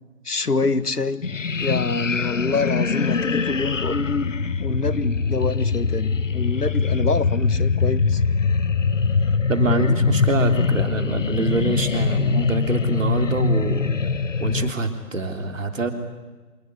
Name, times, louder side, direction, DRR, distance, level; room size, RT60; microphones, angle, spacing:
voice 1, 0.2-1.3 1.6-4.3 4.6-8.2 9.7-9.9, left 3 dB, 75° left, 16 dB, 1.6 m, -26 dB
sound 1, 1.2-14.7, left 5 dB, 55° left, 1.0 m, -22 dB
voice 2, 9.5-13.8 14.4-15.9, right 3 dB, 55° right, 6 dB, 3.6 m, -25 dB
27.0 x 19.5 x 9.8 m, 1.3 s
figure-of-eight pair, 150°, 46 cm